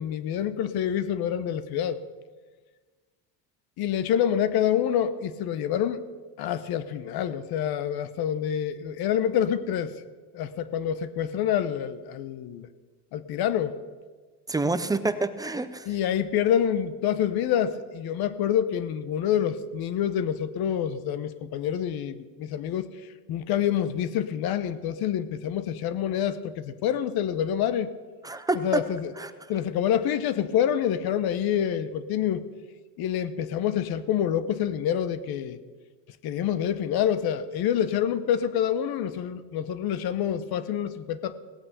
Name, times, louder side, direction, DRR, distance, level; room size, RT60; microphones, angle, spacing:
voice 1, 0.0-2.0 3.8-6.0 6.4-9.9 10.3-12.7 13.1-13.8 15.9-22.9 23.3-27.9 28.5-29.1 29.5-32.4 33.0-35.6 36.2-41.4, left 9 dB, 50° left, 14 dB, 1.0 m, -27 dB
voice 2, 14.5-15.9 28.2-28.8 29.2-29.3, right 2 dB, 10° right, 11 dB, 0.6 m, -27 dB
17.0 x 8.4 x 6.8 m, 1.4 s
supercardioid pair, 110°, 48 cm